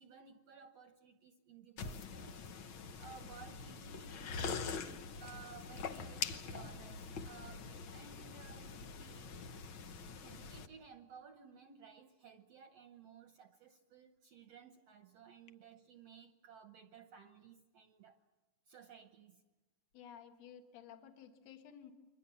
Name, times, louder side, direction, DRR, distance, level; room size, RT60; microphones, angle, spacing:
voice 1, 0.0-2.4 3.0-9.3 10.2-18.2 18.7-19.4, right 6 dB, 65° right, 7 dB, 1.7 m, -57 dB
sound 1, 1.8-10.7, left 5 dB, 80° left, 1.1 m, -44 dB
voice 2, 19.9-21.9, left 8 dB, 55° left, 5 dB, 2.5 m, -54 dB
30.0 x 23.5 x 7.0 m, 1.2 s
omnidirectional pair, 3.9 m